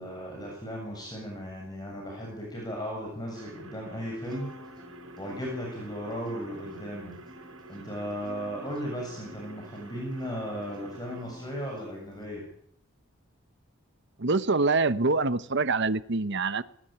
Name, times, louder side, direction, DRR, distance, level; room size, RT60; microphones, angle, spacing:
voice 1, 0.0-4.5 5.2-7.1 7.7-12.5, equal, 20° left, -1 dB, 7.6 m, -36 dB
sound 1, 3.3-11.3, right 2 dB, 85° right, 5.8 m, -49 dB
Acoustic guitar, 4.2-12.2, left 1 dB, 20° right, 7.7 m, -51 dB
voice 2, 14.2-16.6, right 3 dB, 55° right, 13 dB, 1.1 m, -25 dB
19.5 x 19.5 x 9.0 m, 0.67 s
head